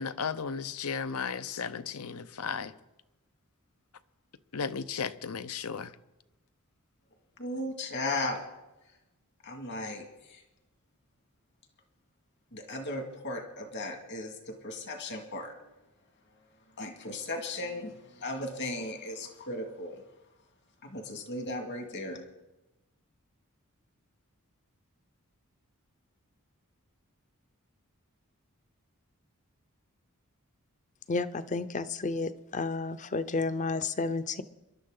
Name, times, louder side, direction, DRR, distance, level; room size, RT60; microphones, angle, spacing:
voice 1, 0.0-2.7 4.5-5.9, left 6 dB, 80° left, 0.8 m, -35 dB
voice 2, 7.4-8.4 9.4-10.4 12.5-15.7 16.8-20.0 20.8-22.3, left 2 dB, 55° left, 2.2 m, -36 dB
voice 3, 31.1-34.4, left 3 dB, 35° left, 0.7 m, -31 dB
27.0 x 12.0 x 3.9 m
head